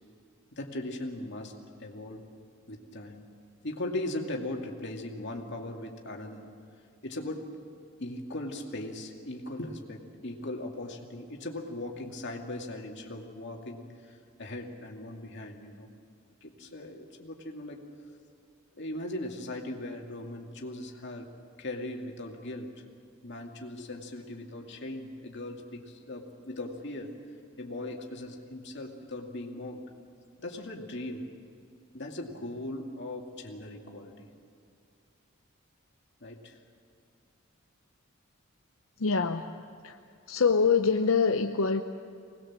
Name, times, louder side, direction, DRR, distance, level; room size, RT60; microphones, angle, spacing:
voice 1, 0.5-1.5 1.8-2.3 2.7-3.2 3.6-6.5 7.0-7.5 8.0-15.9 16.4-17.9 18.8-21.3 21.6-22.7 23.2-27.1 27.6-29.9 30.4-31.3 31.9-34.3 36.2-36.6, left 1 dB, 60° left, 1 dB, 2.4 m, -39 dB
voice 2, 39.0-39.5 39.8-40.0 40.3-41.8, left 5 dB, 85° left, 5 dB, 0.8 m, -24 dB
24.5 x 19.5 x 7.4 m, 2.4 s
head